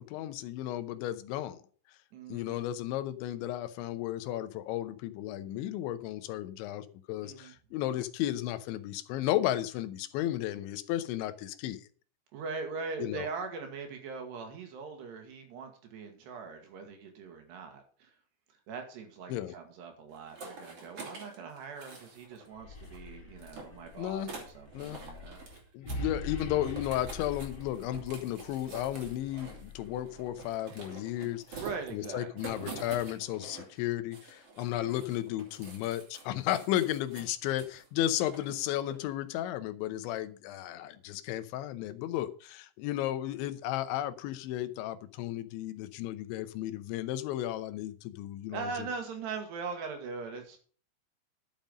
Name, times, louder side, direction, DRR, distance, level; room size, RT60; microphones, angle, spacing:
voice 1, 0.0-1.6 2.3-11.9 13.0-13.3 19.3-19.6 24.0-24.3 24.7-25.0 25.7-31.6 31.9-48.9, left 13 dB, 85° left, 12 dB, 3.2 m, -34 dB
voice 2, 2.1-2.7 7.2-7.5 12.3-18.1 18.7-25.4 31.5-32.6 48.5-50.6, right 5 dB, 70° right, 4 dB, 4.1 m, -41 dB
sound 1, 20.1-22.5 22.7-25.6 25.9-26.0 26.3-33.8 34.1-37.9 38.3-39.1, right 3 dB, 35° right, 3.4 m, -47 dB
sound 2, 22.4-30.5, left 1 dB, 35° left, 2.0 m, -44 dB
12.0 x 7.4 x 5.2 m, 0.42 s
omnidirectional pair, 5.2 m